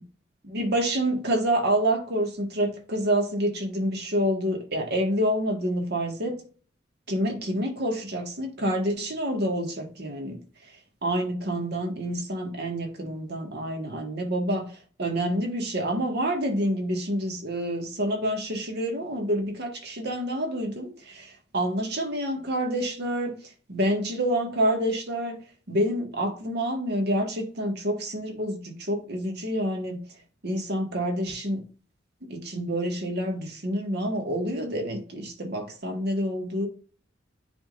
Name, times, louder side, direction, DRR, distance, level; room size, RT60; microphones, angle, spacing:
voice 1, 0.4-6.4 7.1-10.4 11.0-14.7 15.0-23.3 23.7-25.4 25.7-30.0 30.4-31.6 32.3-36.7, right 1 dB, 60° right, 1.8 m, -28 dB
10.0 x 3.7 x 2.5 m
head